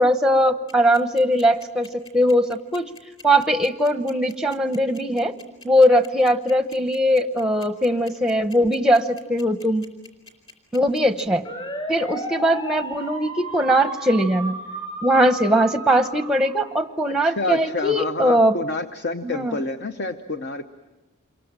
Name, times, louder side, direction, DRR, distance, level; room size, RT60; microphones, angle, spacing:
voice 1, 0.0-1.9 2.1-2.9 3.2-5.4 5.6-9.8 10.7-11.4 11.9-14.6 15.0-18.6 19.2-19.6, equal, 5° right, 9 dB, 0.9 m, -20 dB
sound 1, 0.7-17.1, right 1 dB, 25° left, 4.5 m, -34 dB
voice 2, 17.1-20.7, left 2 dB, 50° left, 8 dB, 0.9 m, -28 dB
27.5 x 23.0 x 8.9 m, 1.1 s
head